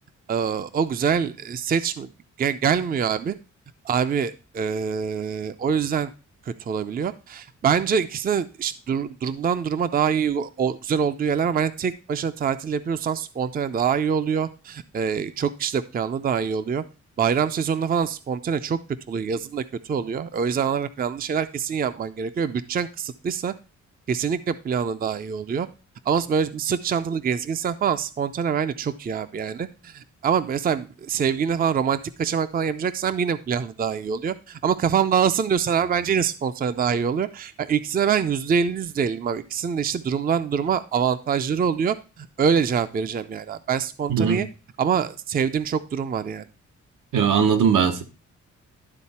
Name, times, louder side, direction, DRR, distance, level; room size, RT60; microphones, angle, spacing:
voice 1, 0.3-2.1 2.4-3.4 3.8-6.1 6.5-16.8 17.2-18.8 19.1-23.5 24.1-25.7 26.1-44.5 44.8-46.4, right 7 dB, 30° right, 0.4 m, -25 dB
voice 2, 44.1-44.4 47.1-48.0, right 7 dB, 85° right, 1.2 m, -19 dB
12.0 x 4.0 x 4.2 m
wide cardioid pair, 145°, 30 cm